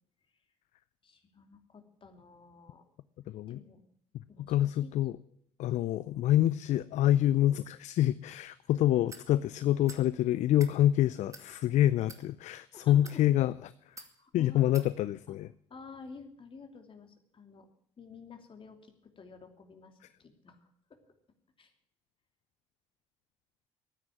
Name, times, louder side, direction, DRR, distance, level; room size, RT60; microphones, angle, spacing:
voice 1, 1.0-2.9 3.5-3.8 4.3-4.9 12.7-13.2 14.0-14.8 15.3-15.4 15.7-17.7 18.0-21.0 21.6-21.7, left 4 dB, 35° left, 5 dB, 2.9 m, -51 dB
voice 2, 3.3-3.6 4.5-5.2 5.6-13.7 14.3-15.5, left 13 dB, 55° left, 17 dB, 0.5 m, -27 dB
sound 1, 9.1-9.3 9.9-10.1 10.5-10.7 11.3-11.5 12.0-12.2 12.9-13.2 14.0-14.1 14.7-14.9, right 3 dB, 20° right, 2.4 m, -48 dB
13.5 x 9.6 x 9.0 m, 0.66 s
hypercardioid pair, 55°, 15 cm